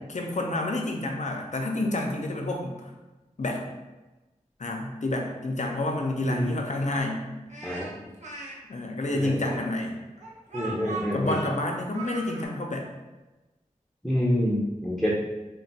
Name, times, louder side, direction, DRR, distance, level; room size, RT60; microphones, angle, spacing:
voice 1, 0.1-2.7 3.4-3.6 4.6-7.3 8.7-10.0 11.1-12.9, left 2 dB, 60° left, 1 dB, 0.5 m, -29 dB
voice 2, 6.2-6.5 7.6-7.9 9.1-9.5 10.5-11.4 14.0-15.2, equal, 5° left, -7 dB, 0.6 m, -27 dB
Speech, 7.5-8.5 9.4-12.4, right 3 dB, 60° right, 0.7 m, -38 dB
2.4 x 2.2 x 3.9 m, 1.1 s
wide cardioid pair, 40°, 14 cm